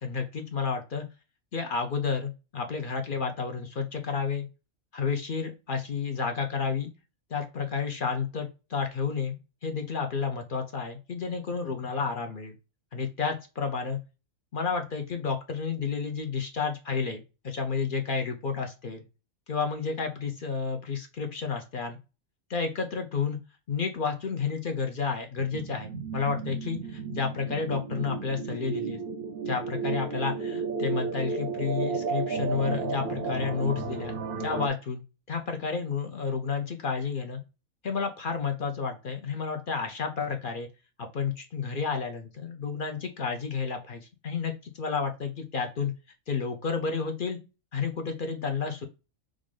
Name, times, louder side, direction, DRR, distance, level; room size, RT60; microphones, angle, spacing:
voice 1, 0.0-1.1 1.5-4.5 4.9-6.9 7.3-12.5 12.9-14.0 14.5-19.0 19.5-22.0 22.5-23.4 23.7-29.0 29.5-34.1 34.4-35.0 35.3-37.4 37.8-40.7 41.0-45.9 46.3-47.4 47.7-48.8, left 5 dB, 55° left, 5 dB, 0.6 m, -31 dB
sound 1, 25.4-34.7, right 5 dB, 60° right, 0.6 m, -33 dB
3.6 x 2.5 x 3.1 m, 0.29 s
omnidirectional pair, 1.4 m